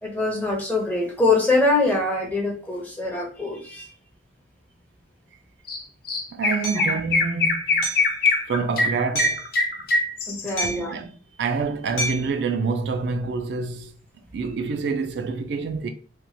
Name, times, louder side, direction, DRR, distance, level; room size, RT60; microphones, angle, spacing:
voice 1, 0.0-3.9 10.3-11.0, left 2 dB, 10° left, 0.7 m, -23 dB
Chirp tweet, 5.7-5.8 6.1-10.7, left 3 dB, 50° left, 0.5 m, -23 dB
voice 2, 6.3-7.8 8.3-9.4 10.4-13.9 14.3-15.9, right 4 dB, 65° right, 0.3 m, -27 dB
Hammer, 6.6-6.9 7.8-8.1 9.2-9.5 10.6-11.0 12.0-12.4, right 1 dB, 85° left, 1.0 m, -28 dB
2.9 x 2.3 x 2.6 m
head